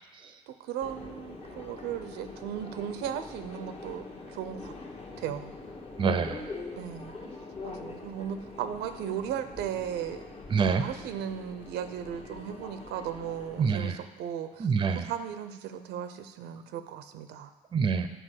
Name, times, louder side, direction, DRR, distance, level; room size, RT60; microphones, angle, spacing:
voice 1, 0.5-4.7 5.2-5.5 6.7-7.1 7.6-10.2 10.7-17.5, right 9 dB, 85° right, 10 dB, 0.6 m, -36 dB
Subway metro underground, 0.8-14.0, left 3 dB, 35° left, 1.2 m, -44 dB
voice 2, 6.0-6.4 10.5-10.8 13.6-13.9 14.6-15.1 17.7-18.1, right 5 dB, 30° right, 9 dB, 0.6 m, -25 dB
7.7 x 4.6 x 6.4 m, 1.3 s
cardioid pair, 110°, 17 cm